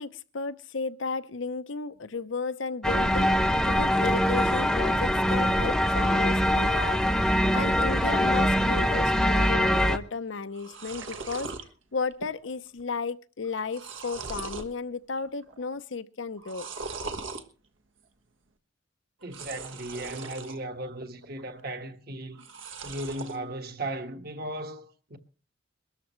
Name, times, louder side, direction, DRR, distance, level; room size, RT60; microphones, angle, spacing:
voice 1, 0.0-11.5 11.9-16.7, left 4 dB, 75° left, 0.7 m, -34 dB
sound 1, 2.8-10.0, equal, 5° left, 0.7 m, -23 dB
sound 2, 10.1-10.2 10.4-11.7 12.1-12.5 12.8-12.9 13.4-14.7 15.2-15.6 16.4-17.4 19.2-20.6 21.0-21.6 22.3-23.4, right 4 dB, 85° right, 1.4 m, -39 dB
voice 2, 19.2-22.4 22.8-25.2, right 1 dB, 50° right, 1.5 m, -36 dB
22.5 x 13.5 x 3.2 m
head